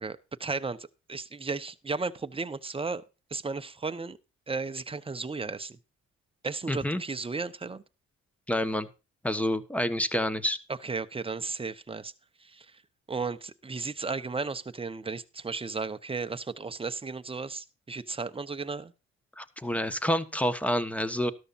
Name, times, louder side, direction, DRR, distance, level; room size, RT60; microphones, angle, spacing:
voice 1, 0.0-3.0 3.3-4.2 4.5-5.8 6.4-7.8 10.7-12.1 12.4-12.7 13.1-18.9, right 4 dB, 20° right, 0.9 m, -34 dB
voice 2, 6.7-7.0 8.5-8.9 9.2-10.6 19.4-21.3, left 1 dB, 5° left, 1.3 m, -28 dB
13.0 x 12.5 x 2.6 m
cardioid pair, 90°, 30 cm